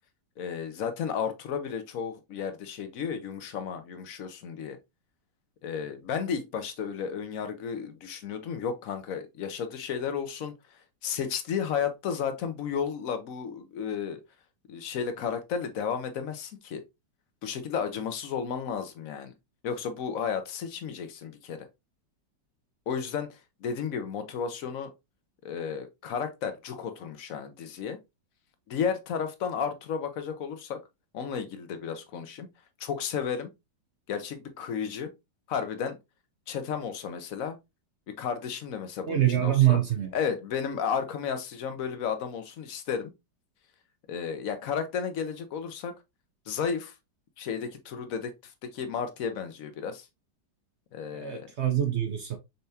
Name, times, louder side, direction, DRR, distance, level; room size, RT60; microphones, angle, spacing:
voice 1, 0.4-4.8 5.6-10.5 11.0-14.2 14.7-16.8 17.4-19.3 19.6-21.7 22.9-24.9 25.4-28.0 28.7-30.8 31.1-32.5 32.8-33.5 34.1-35.1 35.5-36.0 36.5-37.6 38.1-39.8 40.1-43.1 44.1-45.9 46.5-46.9 47.4-50.1 50.9-51.5, left 7 dB, 60° left, 1.0 m, -33 dB
voice 2, 39.1-40.1 51.1-52.4, right 12 dB, 65° right, 0.6 m, -24 dB
5.5 x 3.4 x 2.7 m
omnidirectional pair, 2.0 m